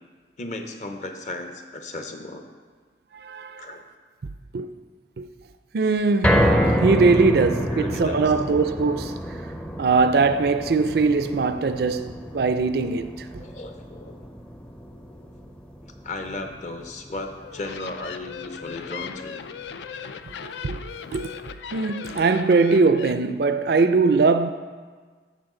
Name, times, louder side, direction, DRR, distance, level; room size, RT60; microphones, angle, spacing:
voice 1, 0.4-2.4 3.6-3.8 7.7-8.3 13.4-14.2 15.8-19.4, left 2 dB, 40° left, 0.7 m, -35 dB
voice 2, 3.1-3.6 4.5-4.7 5.2-5.3 5.7-9.2 9.8-13.3 20.4-20.8 21.1-21.3 21.7-24.5, right 4 dB, 55° right, 0.4 m, -21 dB
sound 1, 6.2-18.5 18.9-19.0 19.4-19.5, equal, 5° left, 0.5 m, -28 dB
sound 2, 17.4-23.1, left 7 dB, 70° left, 0.4 m, -38 dB
14.0 x 4.7 x 3.8 m
head